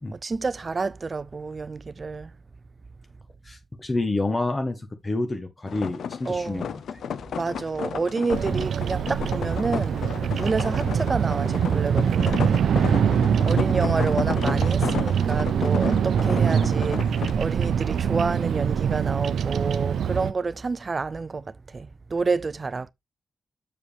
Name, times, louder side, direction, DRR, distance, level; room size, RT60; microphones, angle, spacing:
voice 1, 0.1-2.3 6.3-6.7 7.3-12.6 13.4-22.9, right 4 dB, 30° right, 0.4 m, -29 dB
voice 2, 3.4-7.0 8.5-8.7 12.7-13.0, left 2 dB, 20° left, 0.9 m, -29 dB
sound 1, 5.7-17.4, left 7 dB, 85° left, 0.5 m, -33 dB
Bird vocalization bird call bird song, 8.3-20.3, right 8 dB, 85° right, 0.5 m, -24 dB
7.5 x 6.9 x 3.2 m
wide cardioid pair, 150°, 0 cm